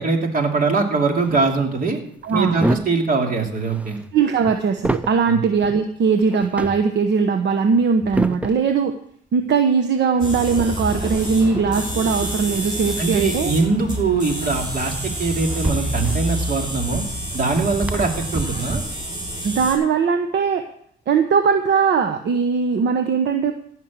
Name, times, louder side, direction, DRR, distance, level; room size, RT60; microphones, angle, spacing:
voice 1, 0.0-2.0 2.3-4.0 5.3-5.4 13.0-17.0 17.3-18.8, right 4 dB, 45° right, 3 dB, 2.8 m, -22 dB
sound 1, 1.2-1.5 2.2-3.1 3.4-5.2 5.6-5.8 6.2-6.9 7.7-8.7 11.1-12.0 13.8-13.9 14.5-19.2, right 1 dB, 5° right, 0.5 m, -29 dB
voice 2, 2.2-2.6 4.1-9.0 9.3-13.5 19.4-20.6 21.1-23.5, right 5 dB, 65° right, 7 dB, 1.1 m, -20 dB
sound 2, 10.2-19.8, equal, 25° right, 5.5 m, -28 dB
15.5 x 6.4 x 7.5 m, 0.65 s
cardioid pair, 90°, 20 cm